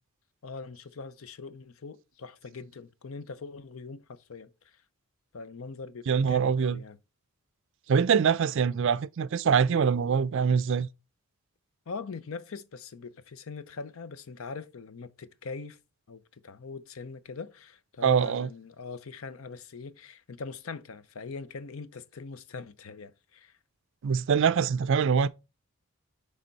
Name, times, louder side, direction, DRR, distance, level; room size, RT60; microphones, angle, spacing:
voice 1, 0.4-4.5 5.3-7.0 11.9-15.8 16.1-23.5, left 4 dB, 65° left, 0.6 m, -42 dB
voice 2, 6.1-6.8 7.9-10.9 18.0-18.5 24.0-25.3, right 6 dB, 60° right, 0.4 m, -24 dB
9.9 x 3.4 x 4.0 m
head